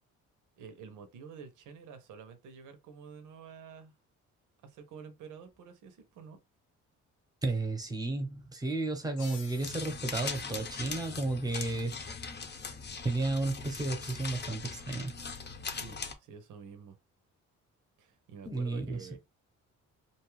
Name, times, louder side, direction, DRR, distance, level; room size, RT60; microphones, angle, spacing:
voice 1, 0.6-3.9 4.6-6.4 15.7-17.0 18.0-19.2, right 6 dB, 85° right, 0.8 m, -49 dB
voice 2, 7.4-11.9 13.0-15.1 18.4-19.1, right 2 dB, 15° right, 0.9 m, -33 dB
sound 1, 9.2-12.4, left 6 dB, 85° left, 1.0 m, -53 dB
sound 2, 9.6-16.1, left 5 dB, 35° left, 0.7 m, -40 dB
2.6 x 2.3 x 3.1 m
cardioid pair, 90°, 30 cm